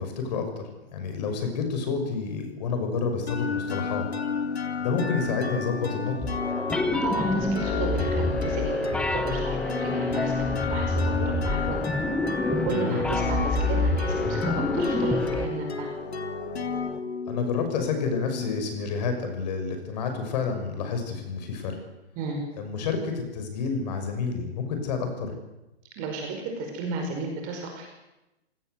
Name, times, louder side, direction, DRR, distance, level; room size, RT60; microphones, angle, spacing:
voice 1, 0.0-4.0 4.8-6.1 12.7-13.0 17.3-21.8 22.6-25.3, left 5 dB, 40° left, 6 dB, 6.2 m, -29 dB
sound 1, 3.3-18.9, left 4 dB, 80° left, 2.9 m, -31 dB
sound 2, 6.2-15.5, left 2 dB, 5° left, 0.9 m, -27 dB
voice 2, 7.0-11.8 12.5-15.9 22.2-22.4 26.0-27.9, right 4 dB, 25° right, 3 dB, 5.2 m, -34 dB
26.0 x 18.0 x 8.1 m, 0.97 s
hypercardioid pair, 145°, 32 cm